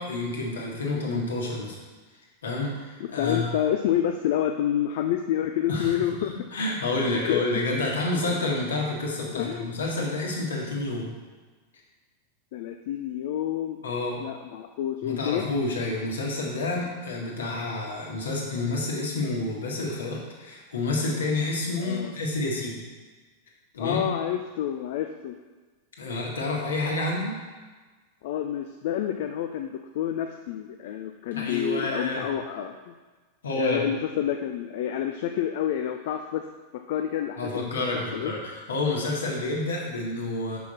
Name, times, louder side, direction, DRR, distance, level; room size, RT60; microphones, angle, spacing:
voice 1, 0.0-1.8 2.4-3.5 5.7-6.0 6.5-11.2 13.8-14.2 15.0-22.8 23.7-24.1 26.0-27.3 31.3-32.3 33.4-33.8 37.4-40.6, left 2 dB, 65° left, -2 dB, 1.6 m, -29 dB
voice 2, 3.0-6.3 7.1-7.4 9.3-9.8 12.5-13.8 14.2-15.4 21.8-22.1 23.8-25.4 28.2-32.9 33.5-36.5 36.7-38.3, left 10 dB, 50° left, 5 dB, 0.4 m, -29 dB
6.2 x 5.4 x 4.2 m, 1.3 s
figure-of-eight pair, 90°, 0 cm